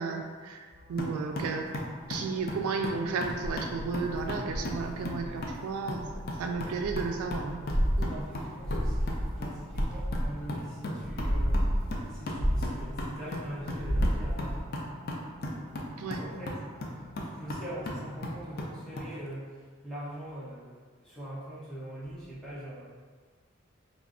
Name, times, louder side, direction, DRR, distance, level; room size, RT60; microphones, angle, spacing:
voice 1, 0.0-1.7 2.1-6.0 6.4-7.6 8.0-8.1 16.0-16.2, right 4 dB, 85° right, 5 dB, 0.3 m, -33 dB
sound 1, 0.7-18.2, left 1 dB, 15° right, 1.2 m, -55 dB
sound 2, 1.0-19.1, left 1 dB, 45° left, 0.4 m, -38 dB
sound 3, 3.3-5.6 6.0-10.6 11.0-13.3 13.6-14.6, equal, 45° right, 0.6 m, -30 dB
voice 2, 8.0-14.6 16.1-22.8, right 1 dB, 5° left, -9 dB, 0.7 m, -43 dB
2.4 x 2.0 x 3.5 m, 1.5 s
head